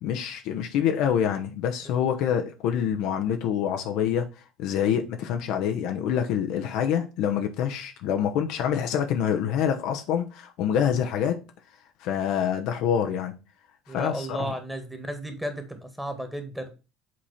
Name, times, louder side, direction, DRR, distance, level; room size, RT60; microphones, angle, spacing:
voice 1, 0.0-4.3 4.6-11.4 12.0-13.3 13.9-14.6, left 8 dB, 60° left, 0.9 m, -26 dB
voice 2, 13.9-16.7, right 1 dB, 5° right, 1.9 m, -34 dB
7.6 x 4.2 x 4.2 m
figure-of-eight pair, 60°, 0 cm